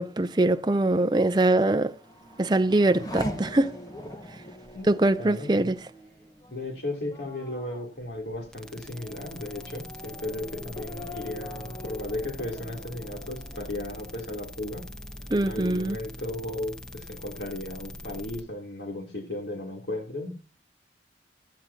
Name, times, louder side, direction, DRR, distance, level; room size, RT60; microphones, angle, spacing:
voice 1, 0.0-1.9 2.4-3.8 4.9-5.8 15.3-16.0, right 2 dB, 25° right, 0.5 m, -23 dB
Race car auto racing / Accelerating revving vroom, 1.8-14.9 15.3-16.0, equal, 20° left, 1.3 m, -42 dB
voice 2, 5.2-5.7 6.5-14.8 15.4-20.3, left 1 dB, 75° left, 3.3 m, -35 dB
sound 1, 8.5-18.4, left 1 dB, 5° left, 1.0 m, -42 dB
16.0 x 13.0 x 2.9 m
head